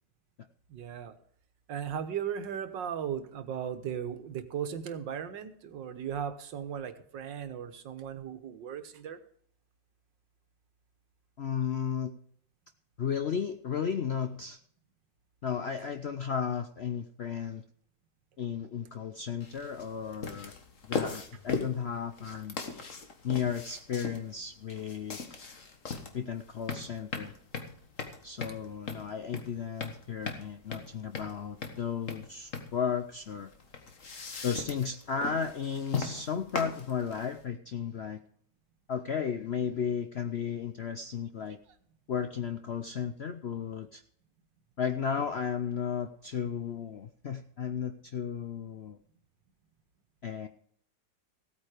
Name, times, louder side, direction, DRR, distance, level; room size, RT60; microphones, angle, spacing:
voice 1, 0.7-1.1 1.7-9.2, right 8 dB, 85° right, 10 dB, 1.9 m, -37 dB
voice 2, 11.4-12.1 13.0-14.6 15.4-17.6 18.4-20.5 20.8-22.6 23.2-25.2 26.1-27.3 28.2-33.5 34.4-38.2 38.9-41.6 42.1-44.0 44.8-49.0 50.2-50.5, left 7 dB, 65° left, 8 dB, 0.6 m, -34 dB
sound 1, 19.4-37.4, left 4 dB, 45° left, 1.8 m, -39 dB
16.0 x 8.9 x 5.0 m, 0.63 s
omnidirectional pair, 1.9 m